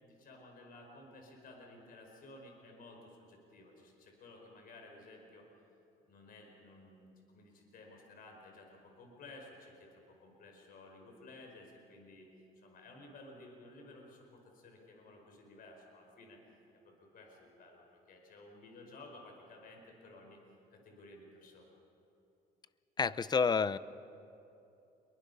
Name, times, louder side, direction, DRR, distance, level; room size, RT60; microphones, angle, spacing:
voice 1, 0.0-5.5 6.1-12.3 12.6-20.4 20.7-21.7, left 2 dB, 60° left, 2 dB, 5.1 m, -55 dB
voice 2, 23.0-23.8, left 5 dB, 25° left, 17 dB, 0.6 m, -29 dB
28.0 x 23.0 x 5.5 m, 2.8 s
cardioid pair, 110°, 17 cm